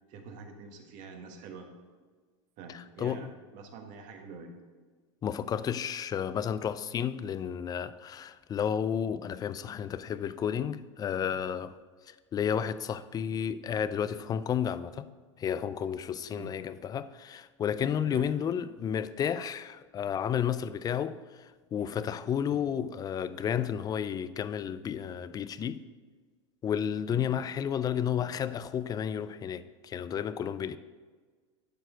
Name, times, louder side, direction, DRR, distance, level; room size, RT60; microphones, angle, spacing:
voice 1, 0.1-1.7 2.6-3.3 3.5-4.5 16.3-16.5 18.0-18.3 22.5-22.6 27.1-27.3, right 5 dB, 55° right, 1.5 m, -46 dB
voice 2, 2.7-3.3 5.2-11.7 12.1-15.1 15.4-25.8 26.6-30.8, left 8 dB, 25° left, 0.4 m, -32 dB
11.5 x 4.5 x 5.0 m
hypercardioid pair, 100°, 16 cm